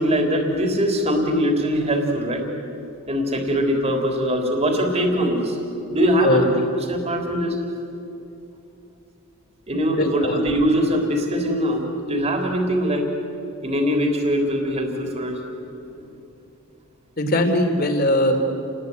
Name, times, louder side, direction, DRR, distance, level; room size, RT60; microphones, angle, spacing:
voice 1, 0.0-2.4 3.1-5.6 5.9-7.6 9.7-13.1 13.6-15.4, equal, 30° right, 2 dB, 3.6 m, -22 dB
voice 2, 9.9-10.4 17.2-18.5, left 1 dB, 45° left, 5 dB, 3.2 m, -20 dB
29.5 x 21.0 x 9.4 m, 2.8 s
head